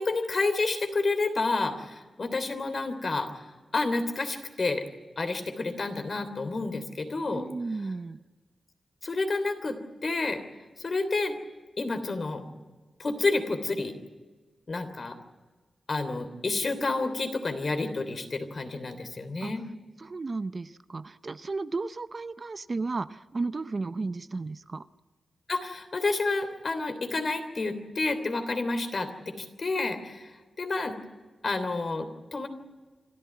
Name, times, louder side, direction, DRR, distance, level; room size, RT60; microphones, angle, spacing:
voice 1, 0.0-3.4 3.7-4.8 5.2-7.5 9.0-10.4 10.8-11.4 11.8-12.4 13.0-13.9 14.7-15.2 15.9-19.6 25.5-31.0 31.4-32.5, left 3 dB, 50° left, 8 dB, 3.2 m, -30 dB
voice 2, 7.3-8.2 19.4-19.5 20.0-24.9, right 3 dB, 45° right, 14 dB, 0.7 m, -34 dB
26.5 x 13.5 x 9.5 m, 1.3 s
cardioid pair, 75°, 0 cm